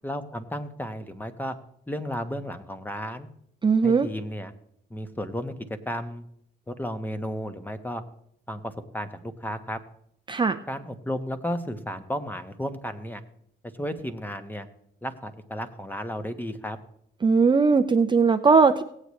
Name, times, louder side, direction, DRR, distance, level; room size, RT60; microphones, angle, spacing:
voice 1, 0.0-1.6 1.9-3.3 3.8-4.5 4.9-5.5 5.9-6.2 6.7-8.0 8.5-9.8 10.7-13.2 13.7-14.7 15.0-16.8, equal, 10° left, 9 dB, 1.1 m, -33 dB
voice 2, 3.6-4.1 10.3-10.6 17.2-18.8, right 5 dB, 25° right, 7 dB, 0.5 m, -19 dB
18.0 x 8.3 x 3.2 m, 0.72 s
cardioid pair, 90°, 20 cm